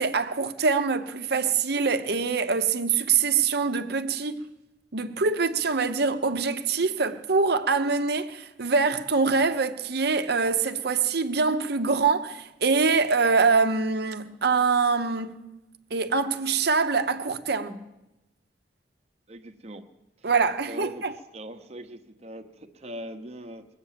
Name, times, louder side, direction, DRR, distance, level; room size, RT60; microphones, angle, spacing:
voice 1, 0.0-4.5 4.9-15.4 15.9-17.8 20.2-21.1, right 4 dB, 60° right, 0.9 m, -24 dB
voice 2, 19.3-19.9 20.2-20.3 20.7-21.0 21.3-23.7, right 1 dB, 35° right, 1.0 m, -41 dB
21.5 x 8.2 x 7.5 m
head